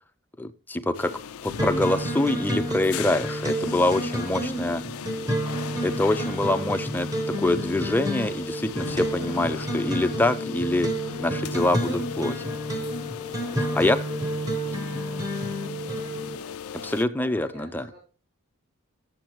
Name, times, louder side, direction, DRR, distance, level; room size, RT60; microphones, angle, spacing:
voice 1, 0.4-1.1 1.4-4.8 5.8-10.9 11.2-12.6 13.7-14.0 16.8-17.8, left 2 dB, 10° left, 10 dB, 0.4 m, -25 dB
sound 1, 0.9-17.0, left 8 dB, 75° left, 0.4 m, -38 dB
sound 2, 1.6-16.4, right 1 dB, 15° right, 0.9 m, -30 dB
voice 2, 13.1-16.9 17.3-18.0, left 1 dB, 70° right, -6 dB, 4.1 m, -51 dB
12.0 x 7.8 x 3.0 m, 0.35 s
head